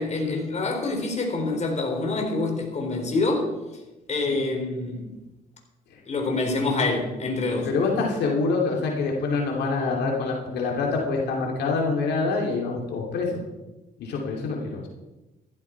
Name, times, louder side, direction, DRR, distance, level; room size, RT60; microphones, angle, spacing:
voice 1, 0.0-3.5 4.1-5.1 6.1-7.7, left 3 dB, 40° left, 2 dB, 4.0 m, -26 dB
voice 2, 7.7-13.3 14.0-14.9, left 4 dB, 80° left, -1 dB, 2.7 m, -26 dB
14.5 x 12.5 x 4.6 m, 1.1 s
cardioid pair, 85°, 17 cm